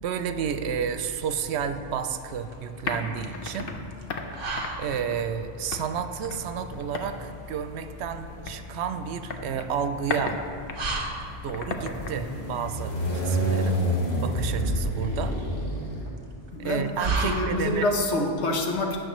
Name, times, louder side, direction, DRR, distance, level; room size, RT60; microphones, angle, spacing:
voice 1, 0.0-3.7 4.8-10.4 11.4-13.8 14.2-15.4 16.6-17.9, right 7 dB, 80° right, 9 dB, 0.8 m, -31 dB
sound 1, 1.0-18.0, right 3 dB, 55° right, 1.1 m, -37 dB
sound 2, 1.2-2.0 3.0-16.7, equal, 40° left, 1.7 m, -31 dB
sound 3, 2.1-13.5, left 4 dB, 60° left, 0.9 m, -37 dB
voice 2, 16.5-19.0, left 2 dB, 85° left, 1 dB, 1.3 m, -27 dB
16.5 x 6.3 x 3.1 m, 2.4 s
omnidirectional pair, 1.1 m